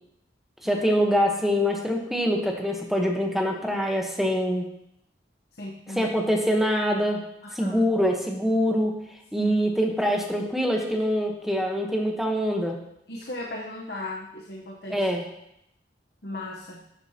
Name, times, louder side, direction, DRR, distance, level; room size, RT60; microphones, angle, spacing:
voice 1, 0.6-4.7 5.9-7.2 7.5-8.9 9.3-12.8 14.9-15.2, equal, ahead, 1 dB, 1.1 m, -24 dB
voice 2, 5.6-6.1 7.4-7.8 9.3-9.5 13.1-15.1 16.2-16.8, left 2 dB, 60° left, -1 dB, 1.0 m, -36 dB
12.5 x 7.6 x 2.9 m, 0.80 s
head